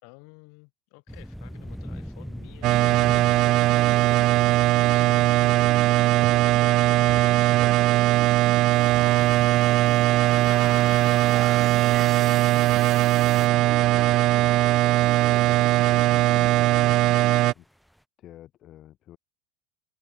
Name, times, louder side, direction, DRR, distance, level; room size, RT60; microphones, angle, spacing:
voice 1, 0.0-3.2 3.7-7.7 8.7-13.2 13.5-13.9, left 40 dB or more, 60° left, 6.2 m, -52 dB
sound 1, 1.1-18.0, equal, ahead, 4.6 m, -44 dB
sound 2, 2.6-17.5, right 17 dB, 45° right, 0.4 m, -20 dB
sound 3, 8.7-13.5, right 7 dB, 25° right, 1.3 m, -41 dB
voice 2, 15.2-17.1 17.5-17.7 18.2-19.2, left 13 dB, 40° left, 2.3 m, -47 dB
supercardioid pair, 140°, 0 cm